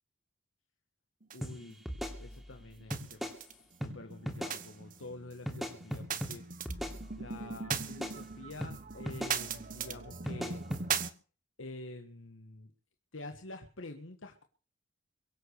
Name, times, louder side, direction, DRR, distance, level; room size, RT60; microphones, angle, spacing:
sound 1, 1.2-2.0 2.3-3.5 3.8-11.1, right 7 dB, 40° right, 1.2 m, -39 dB
voice 1, 1.3-1.8 2.2-6.4 7.1-10.6 11.6-12.7 13.1-14.4, left 2 dB, 75° left, 5 dB, 1.7 m, -47 dB
sound 2, 1.4-1.5 1.9-2.6 2.9-3.4 3.8-3.9 4.3-4.6 5.5-6.3 6.7-7.4 7.7-8.2 8.6-8.7 9.1-9.4 10.3-10.8, equal, ahead, 2.8 m, -38 dB
23.5 x 8.4 x 6.7 m, 0.38 s
head